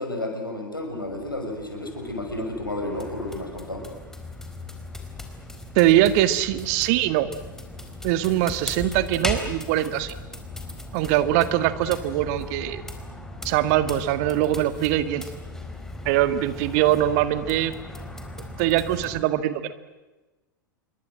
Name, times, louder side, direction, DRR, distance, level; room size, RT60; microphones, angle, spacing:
voice 1, 0.0-3.9, left 1 dB, 85° left, 3 dB, 6.4 m, -31 dB
sound 1, 0.7-19.2, left 2 dB, 5° left, 4.3 m, -38 dB
voice 2, 5.8-7.3 8.0-10.1 10.9-12.8 13.4-15.3 16.1-17.7 18.6-19.7, right 13 dB, 45° right, 12 dB, 1.8 m, -22 dB
28.0 x 23.5 x 7.7 m, 1.1 s
figure-of-eight pair, 90°, 11 cm